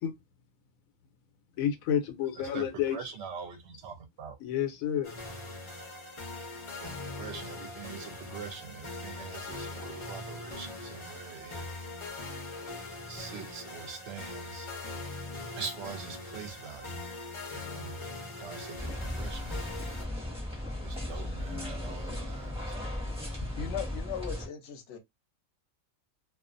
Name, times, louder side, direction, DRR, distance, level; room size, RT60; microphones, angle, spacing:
voice 1, 1.6-3.1 4.4-5.1, left 9 dB, 85° left, 1.0 m, -30 dB
voice 2, 2.5-4.4 6.8-11.7 13.1-14.7 15.6-17.0 17.5-18.0 18.4-19.5 20.8-22.8, right 6 dB, 65° right, 0.8 m, -43 dB
sound 1, 5.0-20.0, left 2 dB, 35° left, 0.5 m, -41 dB
sound 2, 18.8-24.5, left 1 dB, 5° right, 0.7 m, -36 dB
voice 3, 23.6-25.0, left 8 dB, 60° left, 0.8 m, -38 dB
2.4 x 2.4 x 2.4 m
omnidirectional pair, 1.4 m